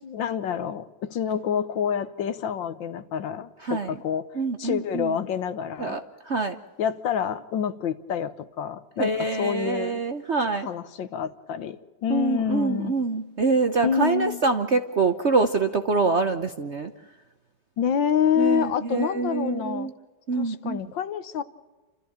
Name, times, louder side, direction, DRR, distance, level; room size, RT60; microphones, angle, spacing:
voice 1, 0.0-6.0 6.8-10.0 10.5-12.9 13.8-14.4 17.8-19.9 20.3-21.4, left 8 dB, 70° left, 12 dB, 1.7 m, -27 dB
voice 2, 3.6-3.9 4.4-5.1 5.8-6.6 9.0-10.7 12.1-16.9 18.4-19.9 20.3-20.8, right 4 dB, 50° right, 8 dB, 0.9 m, -25 dB
29.5 x 14.0 x 8.7 m, 1.2 s
omnidirectional pair, 2.2 m